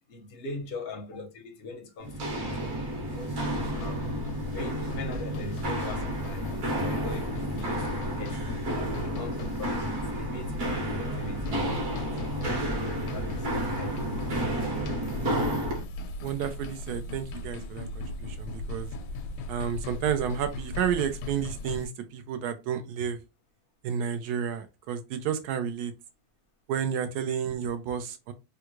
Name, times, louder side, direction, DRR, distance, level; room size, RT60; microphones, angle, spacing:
voice 1, 0.1-3.4 3.7-4.1 4.5-8.4 8.9-12.2 12.4-12.7 13.1-14.7, left 3 dB, 55° left, 0.7 m, -41 dB
Walk footsteps, 2.0-15.8, right 1 dB, 50° right, 1.3 m, -31 dB
sound 1, 3.1-21.9, left 2 dB, 90° left, 1.4 m, -38 dB
voice 2, 16.2-18.9 19.5-23.2 23.8-25.9 26.7-28.3, right 8 dB, 75° right, 0.9 m, -31 dB
3.5 x 2.3 x 2.9 m
omnidirectional pair, 2.2 m